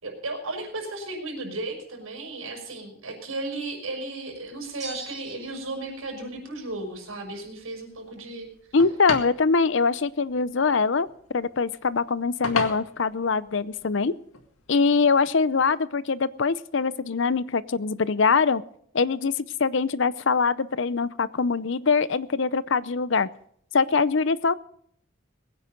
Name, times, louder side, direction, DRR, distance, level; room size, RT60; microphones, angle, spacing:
voice 1, 0.0-8.5, right 2 dB, 90° right, 2 dB, 5.8 m, -35 dB
sound 1, 4.3-15.2, left 4 dB, 90° left, 1.9 m, -39 dB
sound 2, 4.8-5.8, right 3 dB, 35° right, 2.9 m, -40 dB
voice 2, 8.7-11.1 11.3-14.1 14.7-18.6 18.9-23.3 23.7-24.5, left 4 dB, 60° left, 17 dB, 0.6 m, -23 dB
21.5 x 9.7 x 5.2 m, 0.65 s
head